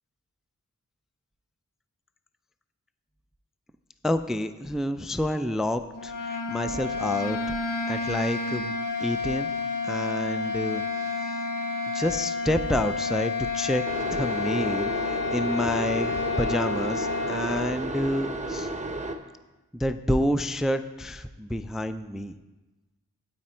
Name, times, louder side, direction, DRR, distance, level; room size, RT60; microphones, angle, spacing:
voice 1, 4.0-7.6 7.9-8.7 9.0-9.5 9.8-10.8 11.1-11.5 11.9-13.8 14.1-18.7 19.7-22.4, left 1 dB, ahead, 10 dB, 0.3 m, -28 dB
sound 1, 5.9-17.8, left 4 dB, 85° left, 1.0 m, -30 dB
sound 2, 13.9-19.2, right 2 dB, 25° right, 0.7 m, -32 dB
9.1 x 8.5 x 4.4 m, 1.1 s
wide cardioid pair, 85°, 32 cm